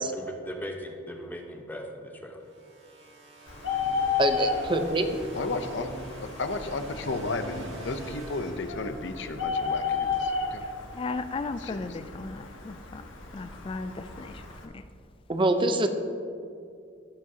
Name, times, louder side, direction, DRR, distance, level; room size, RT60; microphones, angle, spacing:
voice 1, 0.2-2.4, equal, 10° left, 2 dB, 0.9 m, -39 dB
sound 1, 2.4-9.3, right 1 dB, 65° right, 2.2 m, -44 dB
Bird, 3.5-14.6, left 5 dB, 85° left, 1.2 m, -33 dB
voice 2, 4.2-5.1 15.3-15.9, right 1 dB, 25° right, 7 dB, 0.7 m, -24 dB
voice 3, 5.3-5.9 6.4-10.6 11.6-11.9, left 3 dB, 65° left, 8 dB, 0.7 m, -33 dB
voice 4, 10.6-13.0 13.3-14.8, left 3 dB, 30° left, 11 dB, 0.3 m, -36 dB
17.5 x 7.3 x 2.8 m, 2.4 s
head